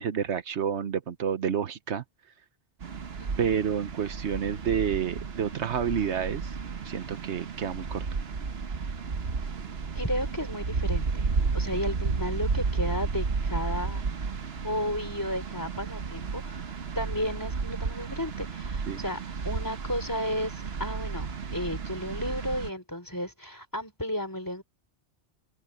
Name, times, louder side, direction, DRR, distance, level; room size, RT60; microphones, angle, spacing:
voice 1, 0.0-2.0 3.4-6.5 6.8-8.0 18.9-19.0, right 8 dB, 80° right, 1.2 m, -29 dB
sound 1, 2.8-22.7, right 5 dB, 65° right, 1.4 m, -32 dB
voice 2, 3.2-3.5 10.0-11.3 11.5-14.0 14.6-19.2 19.4-24.6, left 1 dB, 15° left, 3.8 m, -33 dB
omnidirectional pair, 1.2 m